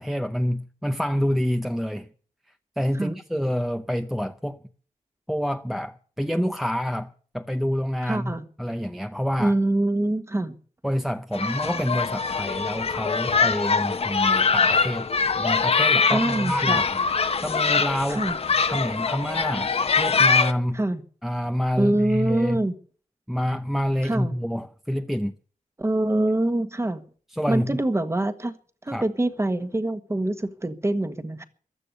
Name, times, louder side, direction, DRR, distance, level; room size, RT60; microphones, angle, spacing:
voice 1, 0.0-2.1 2.8-4.6 5.3-8.3 8.6-9.5 10.8-15.1 15.4-17.0 17.4-18.3 18.7-20.8 21.2-22.6 23.3-25.3 27.3-27.8 28.9-29.1, equal, ahead, 0.7 m, -27 dB
voice 2, 8.0-8.4 9.4-10.5 16.1-16.8 18.1-18.4 20.7-21.0 21.8-22.7 24.0-24.3 25.8-27.0 27.5-28.5 28.8-31.4, right 1 dB, 20° right, 1.4 m, -24 dB
sound 1, 11.3-20.5, left 5 dB, 45° left, 1.1 m, -23 dB
15.5 x 12.0 x 6.7 m
wide cardioid pair, 140°, 14 cm